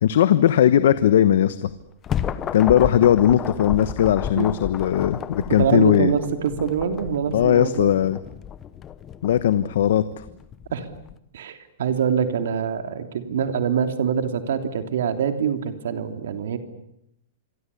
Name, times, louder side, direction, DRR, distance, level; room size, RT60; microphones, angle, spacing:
voice 1, 0.0-1.7 2.5-6.1 7.3-8.2 9.2-10.2, left 10 dB, 65° left, 13 dB, 1.1 m, -18 dB
sound 1, 1.7-11.1, left 9 dB, 20° left, 1.0 m, -33 dB
voice 2, 5.6-7.9 10.7-10.9 11.3-16.6, right 7 dB, 75° right, 8 dB, 3.2 m, -24 dB
27.0 x 23.5 x 8.5 m, 0.79 s
supercardioid pair, 170°, 0 cm